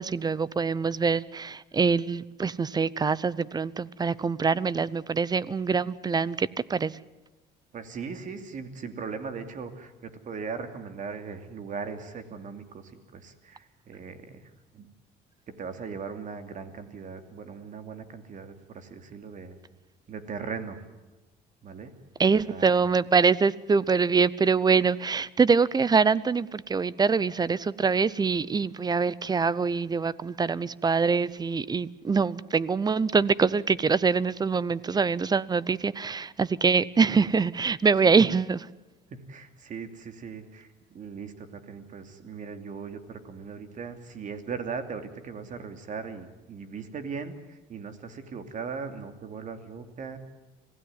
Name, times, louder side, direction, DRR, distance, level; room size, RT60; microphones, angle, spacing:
voice 1, 0.0-6.9 22.2-38.7, right 5 dB, 25° right, 21 dB, 0.7 m, -24 dB
voice 2, 7.7-14.4 14.7-14.9 15.5-19.6 20.1-20.8 21.6-21.9 22.5-22.7 38.0-38.2 39.1-50.2, right 5 dB, 50° right, 8 dB, 2.8 m, -39 dB
26.0 x 16.5 x 9.7 m, 1.1 s
cardioid pair, 110°, 17 cm